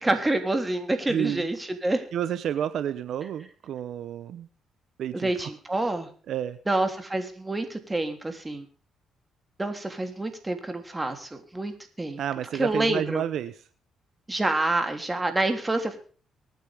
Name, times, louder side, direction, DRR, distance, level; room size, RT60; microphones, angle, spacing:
voice 1, 0.0-2.0 5.1-6.1 6.7-8.7 9.6-12.2 12.5-13.2 14.3-16.0, right 2 dB, 15° right, 7 dB, 3.2 m, -27 dB
voice 2, 1.1-1.5 2.1-4.5 5.0-5.5 6.3-6.6 12.2-13.5, right 10 dB, 70° right, 13 dB, 0.9 m, -30 dB
24.0 x 9.5 x 3.6 m, 0.41 s
cardioid pair, 90°, 0 cm